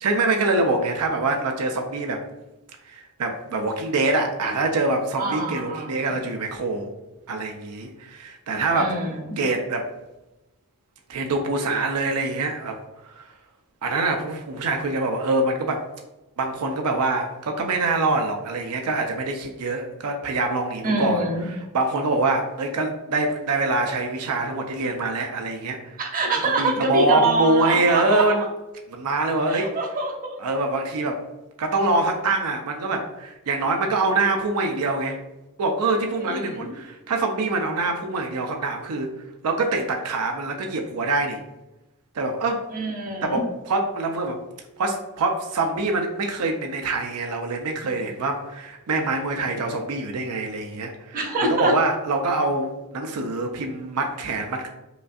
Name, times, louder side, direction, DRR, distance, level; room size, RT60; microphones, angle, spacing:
voice 1, 0.0-2.2 2.9-6.9 7.3-8.9 9.4-9.9 11.1-12.8 13.0-13.3 13.8-15.9 16.4-26.0 26.6-28.4 28.9-29.7 30.4-31.2 31.6-35.2 35.6-39.1 39.4-41.4 42.2-42.6 43.2-44.4 44.8-54.7, right 2 dB, 85° right, 3 dB, 0.5 m, -25 dB
voice 2, 5.2-5.9 8.7-9.4 20.8-21.5 26.0-28.2 29.5-30.4 36.2-36.7 42.7-43.4 51.1-51.7, right 2 dB, 40° right, 1 dB, 0.8 m, -25 dB
5.0 x 2.4 x 2.5 m, 0.99 s
head